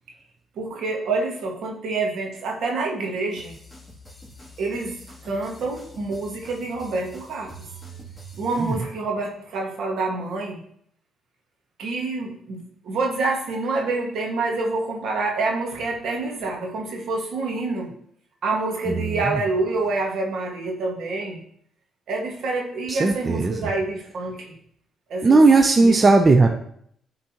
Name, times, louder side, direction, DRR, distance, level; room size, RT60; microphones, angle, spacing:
voice 1, 0.5-3.5 4.6-7.7 8.4-10.6 11.8-17.9 18.4-21.4 22.1-24.5 25.1-25.4 25.8-26.0, right 3 dB, 70° right, 0 dB, 1.6 m, -27 dB
sound 1, 3.4-8.9, right 1 dB, 5° left, 2.5 m, -44 dB
voice 2, 18.9-19.4 22.9-23.7 25.2-26.5, right 3 dB, 30° right, 5 dB, 0.5 m, -17 dB
11.5 x 3.9 x 2.9 m, 0.67 s
cardioid pair, 90°, 0 cm